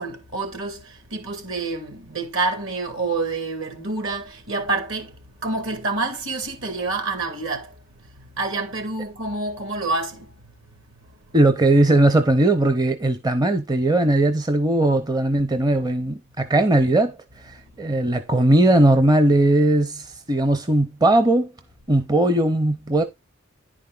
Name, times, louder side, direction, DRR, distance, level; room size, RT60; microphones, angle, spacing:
voice 1, 0.0-10.4 10.7-11.0 11.3-11.4 17.6-17.7, right 3 dB, 65° right, 2.6 m, -28 dB
voice 2, 11.3-21.5 21.9-23.0, right 1 dB, 20° right, 0.6 m, -19 dB
10.5 x 4.8 x 3.9 m
head